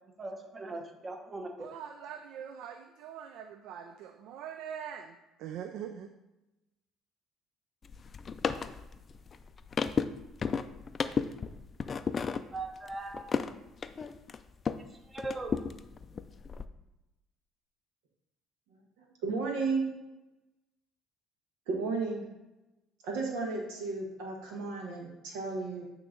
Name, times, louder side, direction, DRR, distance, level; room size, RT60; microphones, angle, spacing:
voice 1, 0.2-1.7 12.2-13.3 14.8-15.5, right 2 dB, 25° right, 4 dB, 0.9 m, -40 dB
voice 2, 1.6-6.1, right 8 dB, 75° right, 7 dB, 0.3 m, -43 dB
sound 1, 7.8-14.9 15.2-16.7, left 5 dB, 35° left, 0.3 m, -34 dB
voice 3, 19.0-19.9 21.7-22.3 23.0-25.8, right 4 dB, 90° right, 0 dB, 1.3 m, -33 dB
8.6 x 3.0 x 3.8 m, 0.99 s
supercardioid pair, 90°, 0 cm